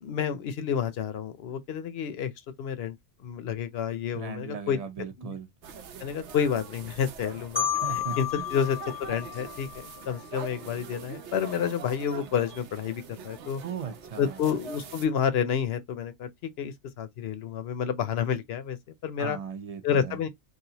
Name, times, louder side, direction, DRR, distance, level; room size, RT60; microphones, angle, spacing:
voice 1, 0.0-2.3 2.6-3.0 3.2-4.8 5.2-5.3 6.0-7.7 7.9-9.7 10.1-13.6 14.2-16.3 16.6-18.8 19.0-19.4 19.8-20.3, left 8 dB, 65° left, 0.8 m, -29 dB
voice 2, 4.1-5.5 7.8-8.5 13.6-14.4 19.2-20.2, right 6 dB, 40° right, 0.6 m, -37 dB
sound 1, 5.6-15.1, right 6 dB, 80° right, 0.9 m, -44 dB
Marimba xylophone, 7.6-10.4, left 10 dB, 20° left, 0.3 m, -32 dB
3.2 x 2.4 x 2.8 m
omnidirectional pair, 1.2 m